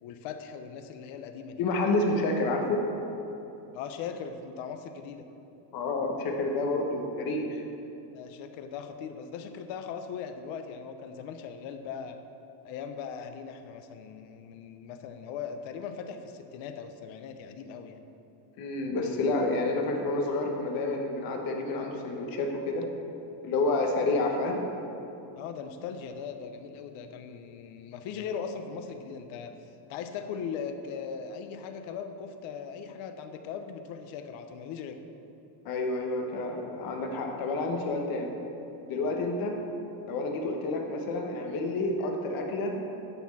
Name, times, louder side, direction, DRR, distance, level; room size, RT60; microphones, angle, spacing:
voice 1, 0.0-1.6 3.7-5.3 8.1-12.2 12.6-18.0 25.4-29.6 29.9-35.0 39.0-39.2, left 6 dB, 70° left, 7 dB, 0.9 m, -39 dB
voice 2, 1.6-2.8 5.7-7.5 18.6-22.8 23.4-24.6 35.6-38.3 38.9-39.5 40.1-42.8, left 2 dB, 45° left, 2 dB, 1.2 m, -29 dB
10.5 x 4.3 x 7.2 m, 3.0 s
cardioid pair, 180°, 49 cm